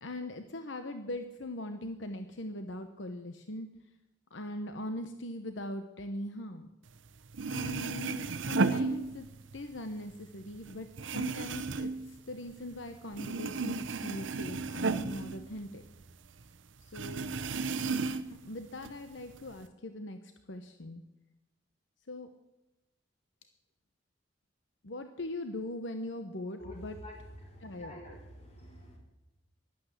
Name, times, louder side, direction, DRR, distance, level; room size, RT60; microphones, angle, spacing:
voice 1, 0.0-3.7 4.3-6.7 7.5-9.3 9.5-15.8 16.8-17.3 18.3-21.0 22.1-22.3 24.8-27.0 27.6-28.0, left 1 dB, 80° left, 8 dB, 1.0 m, -41 dB
sound 1, 7.1-7.2 7.3-9.6 9.9-12.8 13.1-16.1 16.4-16.5 16.9-18.4 18.8-19.6, right 4 dB, 85° right, 0.8 m, -34 dB
voice 2, 27.4-29.0, left 1 dB, 35° left, -2 dB, 4.8 m, -48 dB
12.0 x 11.5 x 8.2 m, 0.98 s
head